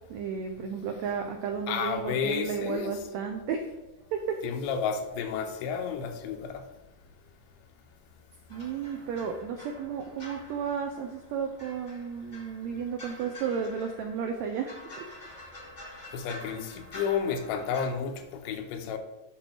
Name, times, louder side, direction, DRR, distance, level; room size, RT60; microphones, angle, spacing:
voice 1, 0.1-3.7 4.1-4.4 8.5-15.0, right 6 dB, 85° right, 4 dB, 1.5 m, -33 dB
voice 2, 1.7-3.0 4.4-6.6 16.1-19.0, left 6 dB, 80° left, 7 dB, 2.3 m, -31 dB
sound 1, 8.5-17.9, left 1 dB, 60° left, 0.4 m, -47 dB
8.3 x 6.0 x 3.3 m, 1.0 s
omnidirectional pair, 3.8 m